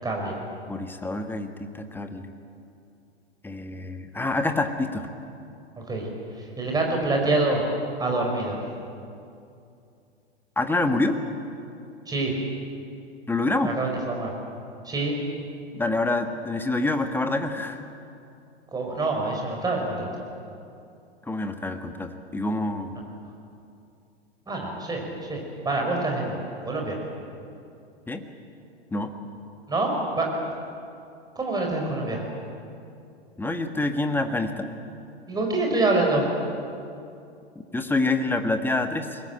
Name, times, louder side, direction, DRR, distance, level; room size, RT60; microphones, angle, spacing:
voice 1, 0.0-0.4 5.9-6.1 6.6-7.6 8.0-8.6 12.1-12.3 13.6-14.3 14.9-15.2 18.7-20.0 24.5-25.0 25.3-25.4 25.7-27.0 29.7-30.3 31.4-32.2 35.3-36.3, right 2 dB, 10° right, 0 dB, 5.2 m, -26 dB
voice 2, 0.7-2.3 3.4-5.1 10.6-11.2 13.3-13.8 15.8-17.8 21.3-22.9 28.1-28.2 28.9-29.1 33.4-34.7 37.7-39.2, left 2 dB, 5° left, 7 dB, 1.4 m, -26 dB
22.5 x 20.0 x 8.9 m, 2.6 s
figure-of-eight pair, 95°, 33 cm